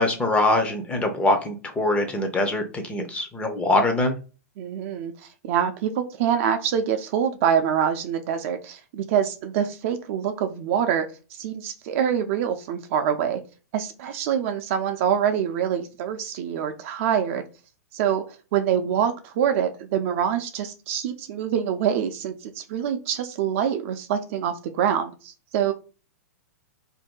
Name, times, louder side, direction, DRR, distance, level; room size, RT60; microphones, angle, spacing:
voice 1, 0.0-4.2, left 2 dB, 15° left, 5 dB, 0.6 m, -23 dB
voice 2, 4.6-5.1 5.4-13.4 13.7-17.5 17.9-18.2 18.5-25.7, right 8 dB, 50° right, 7 dB, 0.5 m, -25 dB
2.6 x 2.2 x 3.6 m, 0.33 s
hypercardioid pair, 125°, 9 cm